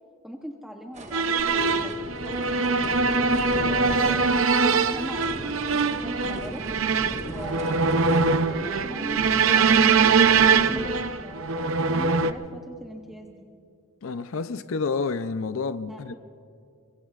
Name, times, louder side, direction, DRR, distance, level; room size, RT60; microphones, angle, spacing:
voice 1, 0.2-3.1 3.6-4.4 4.7-6.6 7.2-8.0 8.4-10.2 10.5-13.5 15.9-16.1, equal, ahead, 0.8 m, -40 dB
sound 1, 0.9-8.2, right 3 dB, 35° right, 1.0 m, -43 dB
sound 2, 1.1-12.3, right 5 dB, 70° right, 0.6 m, -22 dB
sound 3, 1.4-11.1, equal, 25° left, 2.3 m, -38 dB
voice 2, 14.0-16.1, left 4 dB, 70° left, 0.5 m, -29 dB
25.5 x 22.5 x 2.4 m
head